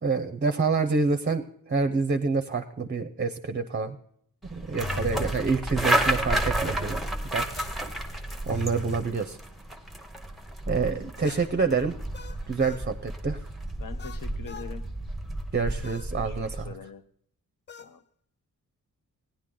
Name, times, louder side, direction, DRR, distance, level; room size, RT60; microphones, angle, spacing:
voice 1, 0.0-4.0 4.5-7.0 7.3-7.5 8.5-9.4 10.7-11.9 12.5-13.4 15.5-16.7, right 4 dB, 30° right, 10 dB, 0.6 m, -27 dB
sound 1, 4.4-16.7, right 1 dB, ahead, 0.8 m, -31 dB
sound 2, 4.8-5.4 7.5-9.1 11.2-12.9 14.0-14.7 15.8-16.1 17.7-18.0, left 4 dB, 30° left, 0.4 m, -40 dB
voice 2, 4.9-5.5 13.8-14.9 16.1-17.0 17.8-18.0, left 7 dB, 65° left, 9 dB, 0.7 m, -44 dB
16.5 x 10.5 x 3.8 m, 0.67 s
wide cardioid pair, 140°, 36 cm